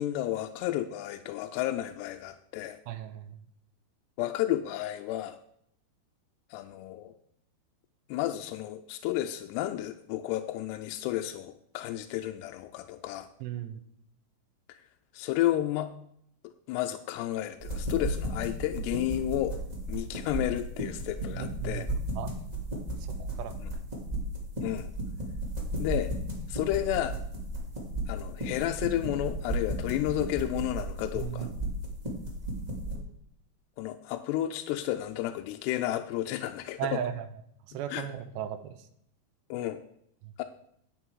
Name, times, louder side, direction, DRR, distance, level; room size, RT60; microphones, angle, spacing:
voice 1, 0.0-2.8 4.2-5.4 6.5-7.1 8.1-13.3 14.7-14.8 15.1-15.9 16.7-19.6 19.9-21.9 23.6-23.7 24.6-24.9 25.8-26.1 26.5-27.2 28.1-31.5 33.8-37.0 37.9-38.1 39.5-39.8 40.4-40.5, left 13 dB, 85° left, 7 dB, 2.6 m, -32 dB
voice 2, 2.9-3.4 13.4-13.8 21.3-22.3 23.1-23.6 25.3-25.4 31.1-31.6 32.9-33.1 36.8-37.3 37.7-38.9 40.2-40.3, right 10 dB, 80° right, 9 dB, 2.9 m, -37 dB
sound 1, 17.6-33.0, right 1 dB, 20° right, 1.1 m, -35 dB
10.0 x 8.9 x 4.7 m, 0.70 s
omnidirectional pair, 5.0 m